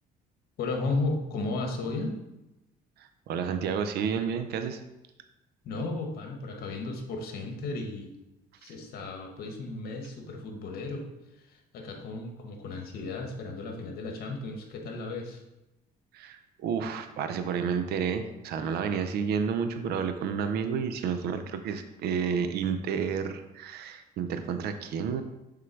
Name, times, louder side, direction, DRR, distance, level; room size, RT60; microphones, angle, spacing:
voice 1, 0.6-2.1 5.6-8.1 8.6-11.0 11.5-15.4, left 3 dB, 65° left, 3 dB, 1.3 m, -34 dB
voice 2, 3.0-4.8 16.1-25.2, right 6 dB, 70° right, 8 dB, 0.6 m, -30 dB
6.4 x 3.8 x 4.5 m, 0.96 s
cardioid pair, 110°, 17 cm